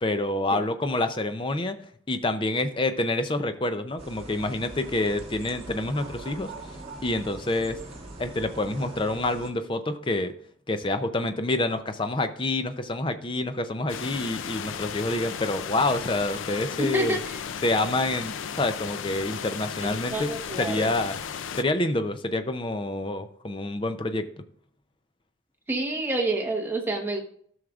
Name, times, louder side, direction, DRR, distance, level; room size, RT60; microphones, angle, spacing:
voice 1, 0.0-1.8 2.1-6.5 7.0-7.8 8.2-10.3 10.7-17.2 17.6-20.3 20.6-21.1 21.5-24.4, left 2 dB, 25° left, 9 dB, 0.5 m, -27 dB
sound 1, 4.0-9.5, right 2 dB, 30° right, 1.4 m, -42 dB
sound 2, 13.9-21.6, left 7 dB, 80° left, 0.4 m, -35 dB
voice 2, 16.8-17.4 19.8-20.9 25.7-27.2, right 2 dB, 10° right, 1 dB, 1.0 m, -28 dB
14.0 x 6.3 x 2.4 m, 0.63 s
head